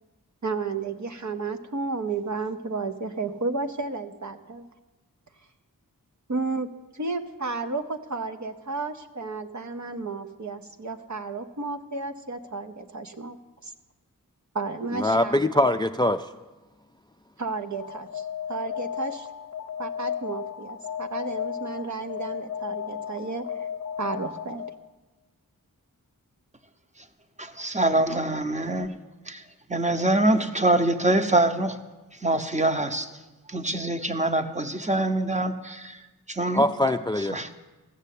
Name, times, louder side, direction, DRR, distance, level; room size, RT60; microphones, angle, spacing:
voice 1, 0.4-4.7 6.3-13.4 13.6-13.7 14.5-15.7 17.4-19.3 19.8-23.7 24.0-24.6, right 3 dB, 55° right, 7 dB, 0.9 m, -32 dB
voice 2, 15.0-16.2 36.5-37.3, left 1 dB, 15° left, 9 dB, 0.3 m, -22 dB
Alarm, 17.8-24.9, left 8 dB, 45° left, 0.8 m, -34 dB
voice 3, 27.4-28.9 29.3-29.4 29.7-31.8 32.2-33.1 33.5-36.0 36.3-36.6 37.3-37.5, right 2 dB, 20° right, 8 dB, 0.9 m, -24 dB
14.5 x 6.6 x 8.3 m, 1.1 s
wide cardioid pair, 65°, 34 cm